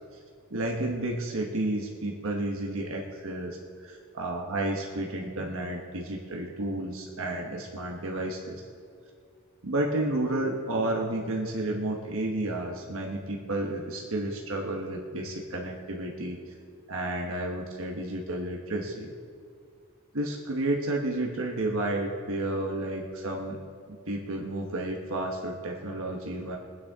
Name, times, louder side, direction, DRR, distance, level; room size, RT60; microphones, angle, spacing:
voice 1, 0.5-8.6 9.6-16.4 16.9-19.1 20.1-23.6 23.9-26.6, right 1 dB, 65° right, 0 dB, 1.2 m, -31 dB
23.0 x 9.4 x 3.6 m, 2.2 s
head